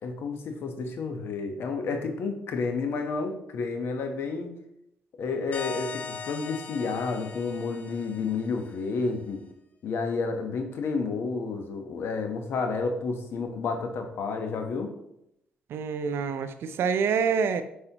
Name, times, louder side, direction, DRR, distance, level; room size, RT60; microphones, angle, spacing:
voice 1, 0.0-4.5 5.2-9.4 9.8-14.9, left 4 dB, 65° left, 5 dB, 1.1 m, -30 dB
sound 1, 5.5-8.9, left 5 dB, 40° left, 0.9 m, -40 dB
voice 2, 15.7-17.6, right 6 dB, 70° right, 10 dB, 0.6 m, -26 dB
8.1 x 5.4 x 3.0 m, 0.80 s
supercardioid pair, 70°, 4 cm